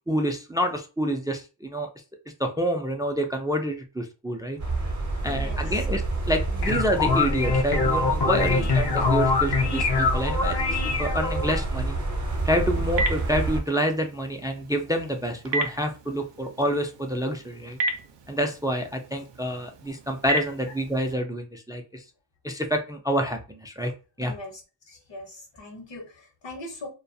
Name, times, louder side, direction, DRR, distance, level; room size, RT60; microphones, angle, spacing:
voice 1, 0.1-1.9 2.4-4.6 5.2-12.0 12.5-17.8 18.3-22.0 22.4-23.9 24.2-24.3, equal, 10° right, 0.3 m, -28 dB
voice 2, 4.5-5.8 8.4-8.8 24.2-24.6 24.9-26.9, left 2 dB, 80° left, 0.9 m, -42 dB
sound 1, 4.6-13.6, right 2 dB, 40° right, 0.7 m, -28 dB
sound 2, 6.4-11.6, left 4 dB, 65° left, 0.6 m, -24 dB
Telephone, 12.3-21.1, right 2 dB, 80° right, 0.6 m, -34 dB
2.3 x 2.2 x 2.6 m
wide cardioid pair, 80°, 43 cm